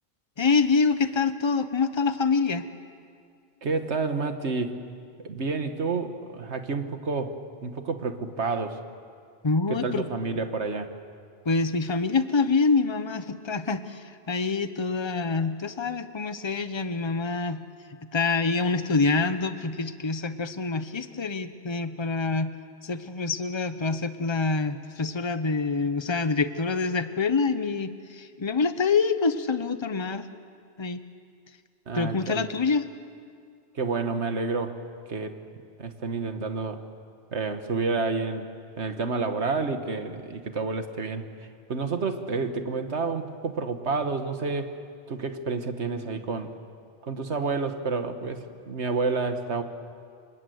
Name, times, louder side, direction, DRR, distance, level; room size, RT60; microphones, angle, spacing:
voice 1, 0.4-2.7 9.4-10.0 11.4-17.6 18.1-22.5 22.8-30.3 30.8-31.0 31.9-32.9, left 4 dB, 25° left, 11 dB, 0.9 m, -26 dB
voice 2, 3.6-4.8 5.2-8.8 9.7-10.9 31.9-32.5 33.8-34.8 35.1-35.3 35.8-36.8 37.3-38.5 38.8-41.3 41.7-44.7 45.1-46.5 47.0-49.6, right 4 dB, 70° right, 8 dB, 1.8 m, -29 dB
27.0 x 25.0 x 8.0 m, 2.3 s
omnidirectional pair, 1.2 m